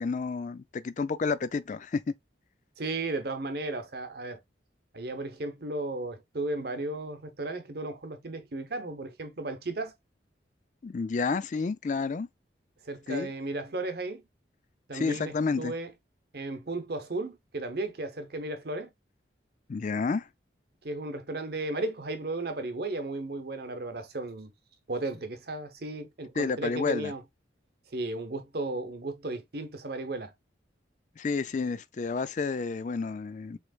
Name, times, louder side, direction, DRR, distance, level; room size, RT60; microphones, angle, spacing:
voice 1, 0.0-2.0 10.8-12.3 13.1-13.3 14.9-15.7 19.7-20.3 26.4-27.1 31.2-33.6, left 4 dB, 40° left, 0.4 m, -30 dB
voice 2, 2.8-4.4 4.9-9.9 12.9-14.2 14.9-15.9 16.3-18.9 20.8-24.5 24.9-27.2 27.9-30.3, right 2 dB, 55° right, 1.0 m, -35 dB
6.4 x 3.2 x 2.3 m
head